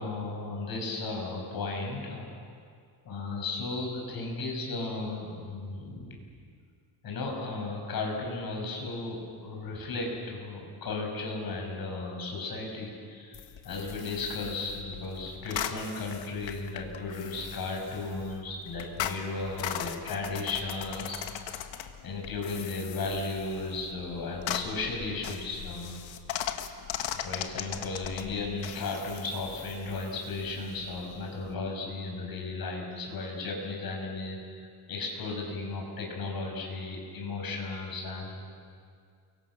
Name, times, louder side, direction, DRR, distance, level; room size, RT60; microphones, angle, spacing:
voice 1, 0.0-2.4 3.1-6.2 7.0-21.6 22.0-26.0 27.0-38.4, left 3 dB, 50° left, 1 dB, 6.9 m, -35 dB
sound 1, 13.3-31.5, left 9 dB, 70° left, 1.7 m, -39 dB
29.5 x 24.0 x 6.5 m, 2.2 s
cardioid pair, 155°, 46 cm